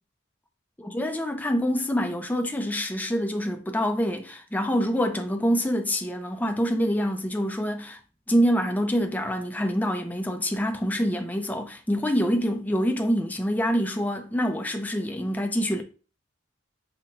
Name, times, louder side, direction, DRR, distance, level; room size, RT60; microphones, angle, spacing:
voice 1, 0.9-8.0 8.3-15.8, equal, 10° left, 0.5 m, -26 dB
5.7 x 2.2 x 3.8 m
head